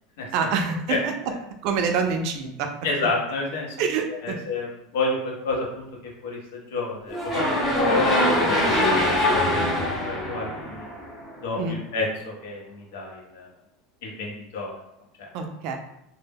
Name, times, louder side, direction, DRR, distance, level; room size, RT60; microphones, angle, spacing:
voice 1, 0.3-1.1 1.6-2.7 3.8-4.4 11.6-11.8 15.3-15.8, right 5 dB, 50° right, 5 dB, 0.4 m, -26 dB
voice 2, 2.8-3.8 4.1-10.9 11.4-13.5 14.0-14.8 15.2-15.3, left 3 dB, 80° left, -2 dB, 0.8 m, -31 dB
sound 1, 7.1-11.3, left 1 dB, 10° left, 0.7 m, -23 dB
2.1 x 2.0 x 3.3 m, 0.79 s
supercardioid pair, 160°, 0 cm